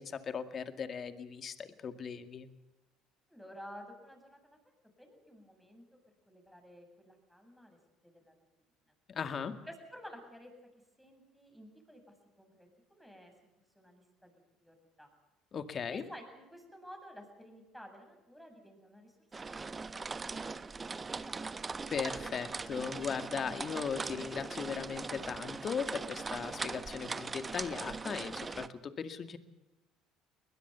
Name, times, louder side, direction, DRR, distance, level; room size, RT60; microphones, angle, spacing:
voice 1, 0.0-2.5 9.1-9.5 15.5-16.0 21.9-29.4, left 6 dB, 45° left, 9 dB, 2.1 m, -38 dB
voice 2, 3.3-4.6 5.0-6.0 6.3-8.3 9.6-10.5 11.0-13.3 13.7-14.3 14.6-15.1 15.9-19.1 19.6-21.6, equal, ahead, 4 dB, 7.9 m, -53 dB
sound 1, 19.3-28.7, right 4 dB, 25° right, 1.1 m, -40 dB
21.5 x 20.5 x 7.0 m, 1.0 s
hypercardioid pair, 65°, 0 cm